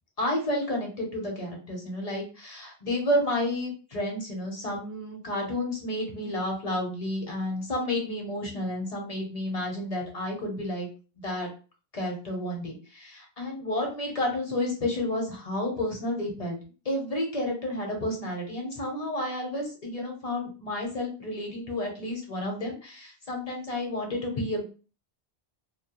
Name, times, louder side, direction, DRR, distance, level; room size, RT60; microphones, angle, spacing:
voice 1, 0.2-10.9 11.2-11.5 11.9-16.6 16.8-24.6, left 1 dB, 40° left, 0 dB, 0.7 m, -31 dB
2.1 x 2.1 x 2.9 m, 0.35 s
omnidirectional pair, 1.1 m